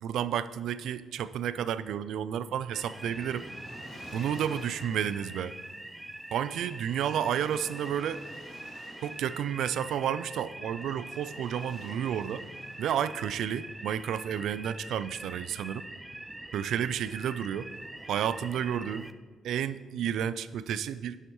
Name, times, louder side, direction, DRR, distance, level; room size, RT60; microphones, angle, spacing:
voice 1, 0.0-3.5 4.1-5.5 6.3-8.2 9.0-12.4 12.8-15.8 16.5-17.7 18.1-19.1 19.4-21.2, right 9 dB, 80° right, 15 dB, 0.4 m, -31 dB
Waves surf, 2.4-14.8, left 2 dB, 75° left, 2.2 m, -54 dB
sound 1, 2.7-19.1, right 1 dB, 10° right, 0.5 m, -44 dB
11.0 x 8.0 x 3.1 m, 1.4 s
cardioid pair, 90°, 0 cm